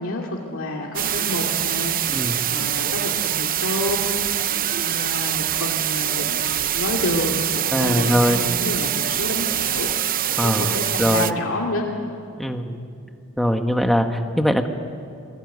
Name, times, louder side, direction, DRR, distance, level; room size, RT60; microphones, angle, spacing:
voice 1, 0.0-4.1 4.8-9.9 10.4-11.9, left 1 dB, 65° left, -1 dB, 2.5 m, -29 dB
sound 1, 0.9-11.3, right 11 dB, 40° right, 0.6 m, -24 dB
voice 2, 2.1-2.4 7.7-8.5 10.4-11.3 12.4-12.8 13.4-14.7, equal, ahead, 5 dB, 1.4 m, -21 dB
28.5 x 20.5 x 9.5 m, 2.4 s
head